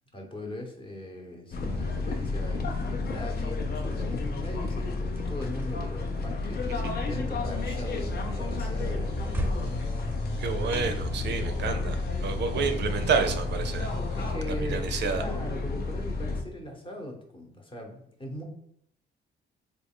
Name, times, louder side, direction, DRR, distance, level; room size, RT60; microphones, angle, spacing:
voice 1, 0.1-9.7 14.2-14.9 15.2-18.4, left 1 dB, 25° left, 2 dB, 0.9 m, -40 dB
sound 1, 1.5-16.4, left 3 dB, 55° left, 0.6 m, -31 dB
sound 2, 4.5-14.5, equal, 10° right, 0.6 m, -43 dB
sound 3, 7.4-14.3, right 1 dB, 85° left, 1.3 m, -39 dB
voice 2, 10.4-13.9 14.6-15.2, right 5 dB, 60° right, 7 dB, 0.5 m, -29 dB
3.3 x 2.3 x 3.6 m, 0.73 s
cardioid pair, 90°, 20 cm